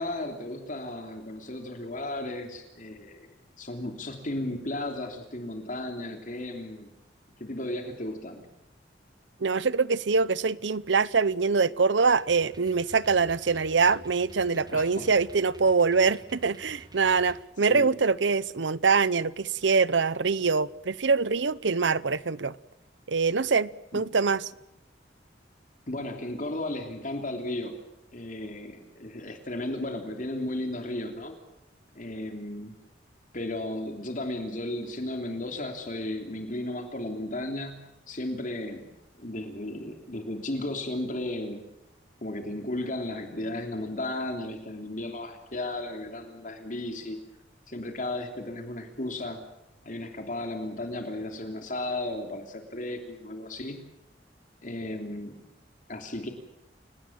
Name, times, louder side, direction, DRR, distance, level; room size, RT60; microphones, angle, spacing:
voice 1, 0.0-6.9 7.4-8.4 14.7-15.1 17.7-17.9 23.9-24.0 25.9-27.8 28.1-31.4 31.9-32.7 33.3-37.8 38.1-38.9 39.2-41.6 42.2-47.2 47.7-49.5 49.8-53.8 54.6-55.4 55.9-56.3, left 1 dB, 45° left, 3.1 m, -34 dB
voice 2, 9.4-22.6 23.1-24.4, right 4 dB, 85° right, 0.8 m, -24 dB
sound 1, 12.2-17.4, right 1 dB, 20° right, 1.9 m, -51 dB
29.0 x 18.5 x 7.4 m
head